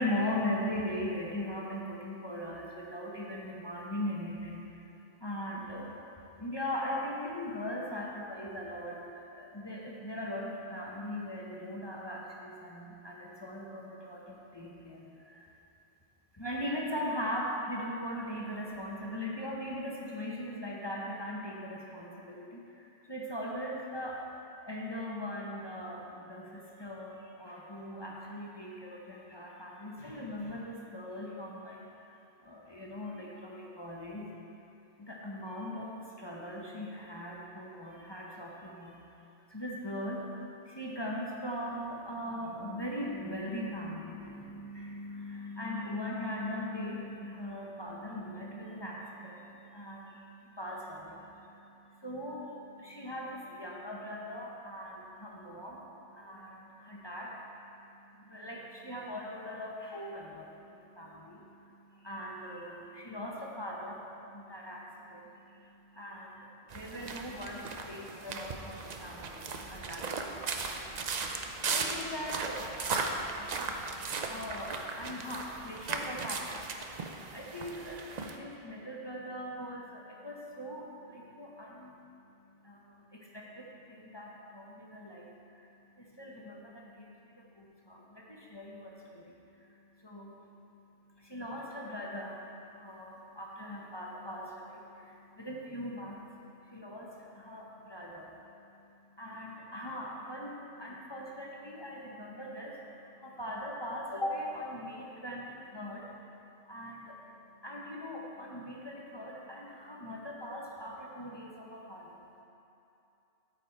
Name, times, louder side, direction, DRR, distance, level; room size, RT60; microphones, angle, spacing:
voice 1, 0.0-4.7 5.2-6.0 6.4-15.5 16.3-24.4 24.7-32.1 32.4-34.2 35.0-39.0 39.5-112.4, left 1 dB, 25° left, -3 dB, 0.8 m, -40 dB
sound 1, 66.7-78.4, right 4 dB, 50° right, 0.6 m, -37 dB
13.0 x 5.2 x 4.5 m, 2.8 s
omnidirectional pair, 1.1 m